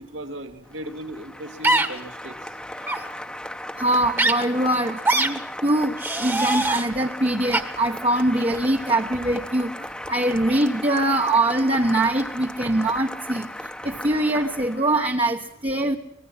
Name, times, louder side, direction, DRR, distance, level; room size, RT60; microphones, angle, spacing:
voice 1, 0.0-2.5, equal, 70° right, 5 dB, 2.6 m, -37 dB
Applause, 0.7-15.1, left 1 dB, 5° left, 1.1 m, -36 dB
sound 1, 1.6-1.9 2.8-3.0 4.2-4.3 5.0-5.3 6.0-6.8 7.5-7.6, right 2 dB, 10° right, 1.5 m, -21 dB
voice 2, 3.8-9.7 10.1-13.5 13.8-16.0, right 1 dB, 30° right, 1 dB, 1.2 m, -23 dB
25.0 x 20.0 x 5.8 m, 0.81 s
head